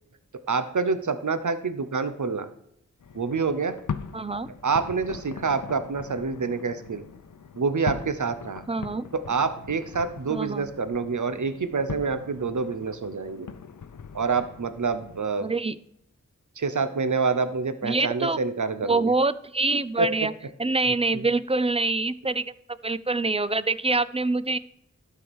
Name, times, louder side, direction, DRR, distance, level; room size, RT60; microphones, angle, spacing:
voice 1, 0.5-2.5 3.1-3.8 4.6-7.0 7.5-8.6 9.1-13.5 14.1-15.5 16.6-19.1 20.0-20.1 21.1-21.3, right 4 dB, 75° right, 11 dB, 0.9 m, -27 dB
sound 1, 3.0-15.2, left 6 dB, 90° left, 0.6 m, -40 dB
voice 2, 4.1-4.5 8.7-9.1 10.3-10.7 15.4-15.8 17.8-18.4 18.8-20.3 20.6-22.5 22.8-24.6, right 3 dB, 20° right, 15 dB, 0.5 m, -25 dB
12.0 x 4.7 x 6.3 m, 0.75 s
wide cardioid pair, 55°, 30 cm